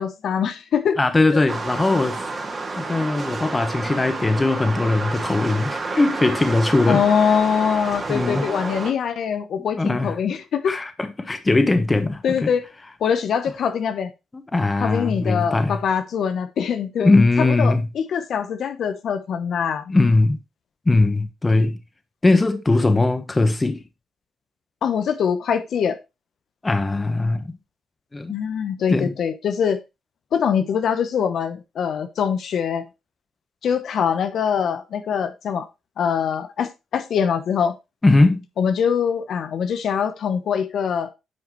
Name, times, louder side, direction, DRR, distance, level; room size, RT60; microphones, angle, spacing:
voice 1, 0.0-1.0 1.3-1.4 6.9-10.7 12.2-12.7 13.0-14.1 14.8-19.8 24.8-26.0 28.3-29.8 30.3-32.8 33.6-35.7 36.0-37.8 38.6-41.1, left 7 dB, 65° left, 0.9 m, -23 dB
voice 2, 1.0-2.2 2.8-7.0 8.1-8.5 9.8-10.1 10.7-12.5 14.5-15.8 17.0-17.9 19.9-20.4 20.9-21.8 22.2-23.8 26.6-27.6 28.1-28.4 28.9-29.1 38.0-38.4, left 2 dB, 20° left, 1.1 m, -20 dB
sound 1, 1.5-8.9, right 3 dB, 35° right, 2.3 m, -30 dB
9.6 x 5.8 x 3.1 m
cardioid pair, 90°, 0 cm